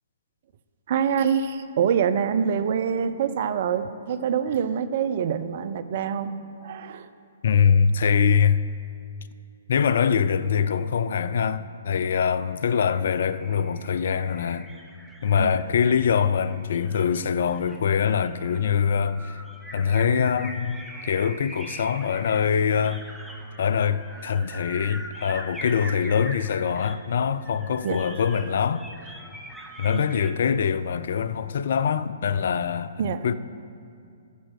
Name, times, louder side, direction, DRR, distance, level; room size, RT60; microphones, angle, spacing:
voice 1, 0.9-6.3 6.6-7.1 15.4-15.5 27.8-28.0 29.9-30.1 33.0-33.3, right 7 dB, 50° right, 0.5 m, -25 dB
voice 2, 7.4-8.6 9.7-14.7 15.2-19.4 19.7-20.8 21.0-23.0 23.6-28.8 29.8-33.0 33.2-33.3, left 7 dB, 60° left, 0.4 m, -23 dB
sound 1, 12.7-30.3, right 1 dB, ahead, 0.8 m, -42 dB
8.2 x 7.4 x 6.4 m
figure-of-eight pair, 125°, 0 cm